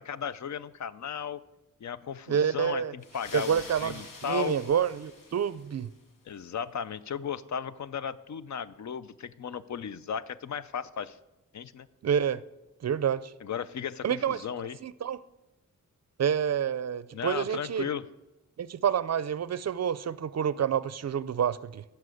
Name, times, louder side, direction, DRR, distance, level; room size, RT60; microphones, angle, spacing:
voice 1, 0.0-1.4 1.8-4.6 6.3-11.2 11.5-11.9 13.4-14.8 17.1-18.1, left 8 dB, 60° left, 0.5 m, -35 dB
voice 2, 2.3-2.9 3.3-5.9 12.0-12.4 12.8-13.3 14.0-14.4 14.8-15.2 16.2-17.9 18.6-21.8, right 8 dB, 55° right, 0.5 m, -28 dB
sound 1, 3.0-6.0, left 3 dB, 80° left, 1.7 m, -47 dB
14.5 x 5.9 x 7.8 m
wide cardioid pair, 140°, 32 cm